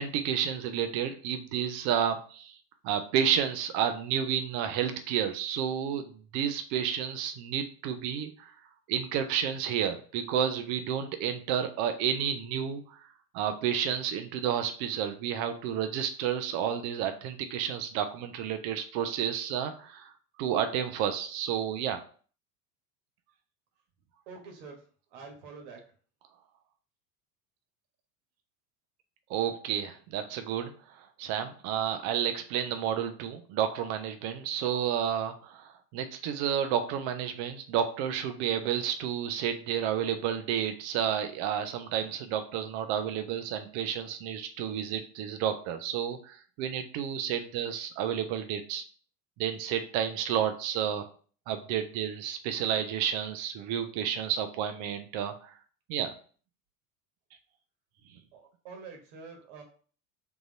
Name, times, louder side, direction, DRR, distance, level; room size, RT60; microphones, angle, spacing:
voice 1, 0.0-2.6 2.8-8.5 8.9-13.0 13.3-20.1 20.4-22.0 29.3-48.8 49.4-51.0 51.5-55.5 55.9-56.1, right 9 dB, 35° right, 8 dB, 0.5 m, -31 dB
voice 2, 24.3-24.8 25.1-25.8 58.3-59.6, right 4 dB, 50° right, 2 dB, 1.3 m, -46 dB
3.8 x 2.9 x 3.8 m, 0.42 s
figure-of-eight pair, 75°, 47 cm